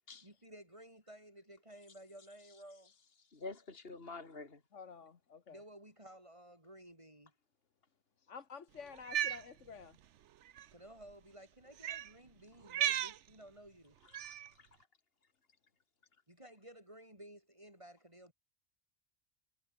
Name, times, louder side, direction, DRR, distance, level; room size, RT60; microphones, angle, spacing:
voice 1, 0.2-2.9 5.5-7.3 10.7-14.0 16.3-18.3, right 1 dB, 25° right, 8.2 m, -55 dB
voice 2, 3.3-4.6 14.1-14.7, left 3 dB, 55° left, 2.9 m, -48 dB
voice 3, 4.7-5.6 8.3-10.0, left 6 dB, 80° left, 1.8 m, -50 dB
Cat, 9.0-9.4 10.5-10.7 11.8-12.1 12.7-13.2 14.1-14.5, right 11 dB, 80° right, 1.0 m, -35 dB
omnidirectional pair, 1.2 m